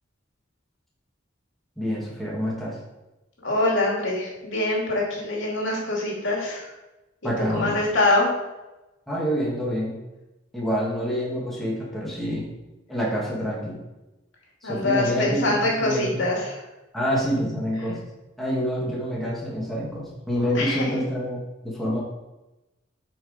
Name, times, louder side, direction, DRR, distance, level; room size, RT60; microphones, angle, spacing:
voice 1, 1.8-2.8 7.2-7.9 9.1-10.0 10.5-12.5 12.9-13.8 14.6-16.3 16.9-18.0 18.4-22.0, equal, ahead, -5 dB, 1.9 m, -27 dB
voice 2, 3.4-6.7 7.5-8.3 14.6-16.6 20.5-21.0, left 2 dB, 70° left, -3 dB, 2.5 m, -24 dB
8.6 x 4.5 x 5.0 m, 1.0 s
head